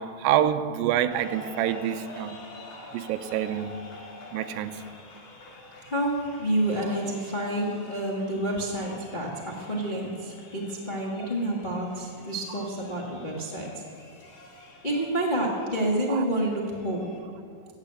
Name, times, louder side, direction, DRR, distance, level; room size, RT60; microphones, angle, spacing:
voice 1, 0.0-2.4 2.9-3.7 4.3-4.8 16.1-16.2, right 11 dB, 85° right, 9 dB, 2.4 m, -27 dB
sound 1, 1.1-17.2, left 2 dB, 55° left, 3.2 m, -47 dB
voice 2, 5.8-13.8 14.8-17.1, right 1 dB, 80° left, -3 dB, 0.4 m, -29 dB
15.0 x 8.4 x 8.7 m, 2.1 s
omnidirectional pair, 4.1 m